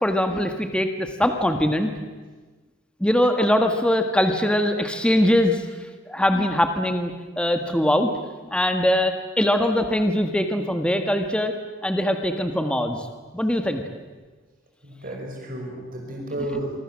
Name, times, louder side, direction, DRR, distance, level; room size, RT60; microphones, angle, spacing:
voice 1, 0.0-1.9 3.0-5.6 6.1-7.1 7.4-8.1 8.5-11.5 11.8-13.0 13.3-13.8, left 1 dB, 5° left, 6 dB, 1.7 m, -22 dB
voice 2, 14.8-16.8, right 1 dB, 50° right, 0 dB, 5.8 m, -32 dB
26.0 x 25.0 x 7.6 m, 1.3 s
head